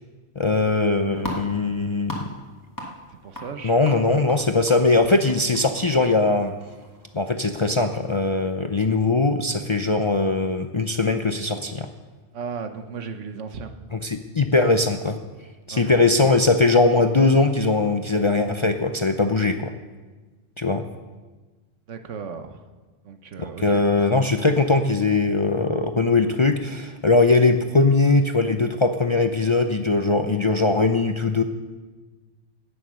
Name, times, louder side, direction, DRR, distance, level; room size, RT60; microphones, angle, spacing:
voice 1, 0.4-2.3 3.6-6.5 7.1-11.9 13.9-15.2 15.7-19.7 20.6-20.8 23.4-31.4, left 3 dB, 40° left, 6 dB, 0.4 m, -20 dB
sound 1, 0.6-7.4, equal, 15° left, 1.9 m, -40 dB
voice 2, 3.1-4.2 12.3-13.7 15.7-16.5 21.9-22.6 23.0-24.1, right 6 dB, 90° right, 8 dB, 1.3 m, -36 dB
17.0 x 7.1 x 6.4 m, 1.3 s
omnidirectional pair, 1.2 m